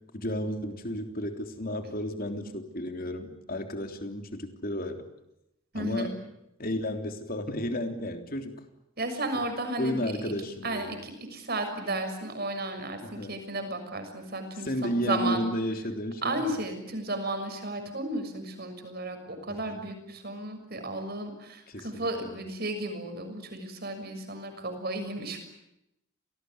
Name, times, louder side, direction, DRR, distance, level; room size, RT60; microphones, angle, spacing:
voice 1, 0.1-5.0 5.8-6.1 6.6-8.5 9.8-10.9 13.2-13.3 14.6-16.4 19.5-19.8 21.7-22.3, equal, 45° left, 6 dB, 3.5 m, -32 dB
voice 2, 5.7-6.1 9.0-10.1 10.6-15.5 16.2-25.4, right 2 dB, 50° right, 6 dB, 6.5 m, -34 dB
28.0 x 19.5 x 9.6 m, 0.86 s
head